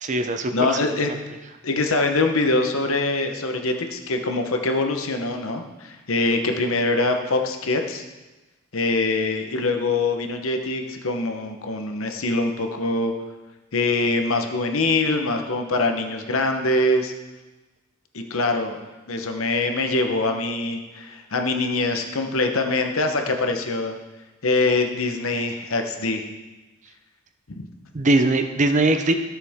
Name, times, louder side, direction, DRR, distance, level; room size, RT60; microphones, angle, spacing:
voice 1, 0.0-0.7 1.1-1.2 27.9-29.2, right 2 dB, 35° right, 7 dB, 0.6 m, -21 dB
voice 2, 0.5-1.1 1.6-8.0 8.7-13.1 13.7-17.1 18.1-18.8 19.1-23.9 24.4-26.2 27.5-27.7, left 2 dB, 70° left, 5 dB, 1.0 m, -23 dB
13.0 x 6.8 x 3.6 m, 1.2 s
head